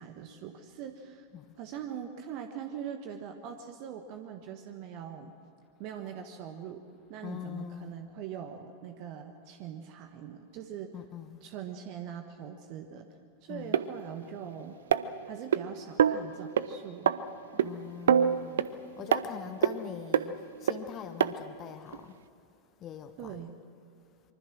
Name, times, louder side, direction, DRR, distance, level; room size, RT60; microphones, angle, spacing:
voice 1, 0.0-1.3 1.6-5.3 5.8-6.8 7.1-10.9 11.4-13.1 13.4-14.8 15.2-17.1 19.0-19.1 19.4-19.5 23.2-23.6, right 8 dB, 45° right, 1.4 m, -42 dB
voice 2, 7.2-7.9 10.9-11.4 13.5-13.8 17.6-18.6 19.0-22.2 22.8-23.4, left 9 dB, 30° left, 1.3 m, -43 dB
sound 1, 13.7-13.8 14.9-15.6 16.0-16.2 16.6-16.7 17.1-17.2 17.6-17.7 18.1-18.7 19.1-19.2 19.6-19.7 20.1-20.3 20.7-20.8 21.2-21.3 21.9-22.0, right 9 dB, 60° right, 0.8 m, -24 dB
25.0 x 24.0 x 6.3 m
figure-of-eight pair, 90°, 0 cm